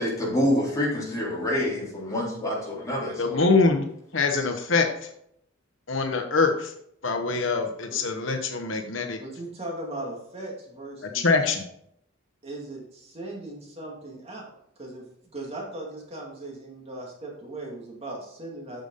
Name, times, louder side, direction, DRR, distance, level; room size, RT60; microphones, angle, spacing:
voice 1, 0.0-3.4, left 1 dB, 15° left, -6 dB, 3.9 m, -27 dB
voice 2, 3.2-3.9 4.1-5.1 5.9-6.7 7.0-9.2 11.1-11.6, left 4 dB, 70° left, 4 dB, 1.0 m, -24 dB
voice 3, 9.2-11.3 12.4-14.5 14.8-15.0 15.3-18.8, right 1 dB, 30° right, -2 dB, 2.3 m, -38 dB
8.9 x 6.6 x 4.1 m, 0.70 s
head